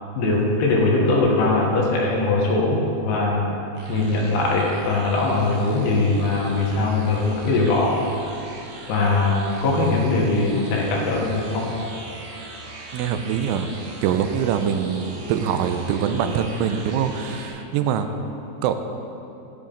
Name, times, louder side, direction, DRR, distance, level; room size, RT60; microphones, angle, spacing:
voice 1, 0.2-3.5 3.9-8.0 8.9-11.7, left 2 dB, 70° left, -2 dB, 3.2 m, -21 dB
sound 1, 3.8-17.5, right 2 dB, 65° right, 3.1 m, -40 dB
voice 2, 12.9-13.7 14.0-18.1 18.6-18.7, right 8 dB, 85° right, 8 dB, 3.0 m, -23 dB
12.0 x 11.5 x 3.9 m, 2.9 s
omnidirectional pair, 5.5 m